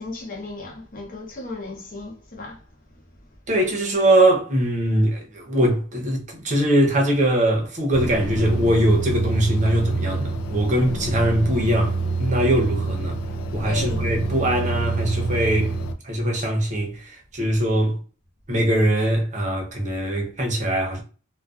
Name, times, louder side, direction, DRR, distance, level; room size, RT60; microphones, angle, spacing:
voice 1, 0.0-2.6 13.7-14.0, left 3 dB, 40° left, 0.7 m, -35 dB
voice 2, 3.5-13.2 13.5-15.7 16.0-18.0 18.5-21.0, right 1 dB, 35° right, 0.7 m, -21 dB
sound 1, 7.9-15.9, right 3 dB, 65° left, 0.3 m, -27 dB
2.4 x 2.3 x 2.3 m
head